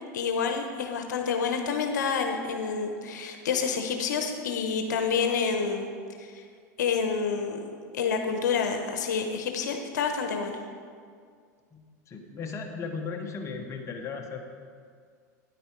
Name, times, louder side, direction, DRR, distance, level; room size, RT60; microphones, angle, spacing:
voice 1, 0.1-5.9 6.2-6.4 6.8-7.6 7.9-10.6, left 5 dB, 85° left, 5 dB, 0.9 m, -28 dB
voice 2, 11.7-14.4, left 5 dB, 30° left, 2 dB, 1.2 m, -36 dB
9.9 x 8.6 x 4.6 m, 2.1 s
hypercardioid pair, 105°, 9 cm